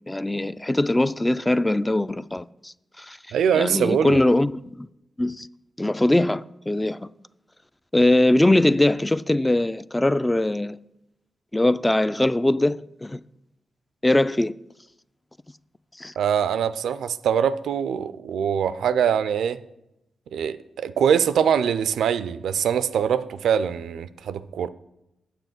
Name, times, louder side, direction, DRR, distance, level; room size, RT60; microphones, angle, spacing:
voice 1, 0.1-3.2 3.5-4.9 5.2-5.5 5.8-7.0 7.9-10.8 11.5-13.2 14.0-14.5 16.0-16.1, left 1 dB, 15° left, 0.3 m, -21 dB
voice 2, 3.3-4.2 16.2-19.6 20.3-24.7, right 8 dB, 80° right, 0.3 m, -23 dB
7.4 x 6.9 x 6.0 m
supercardioid pair, 40°, 0 cm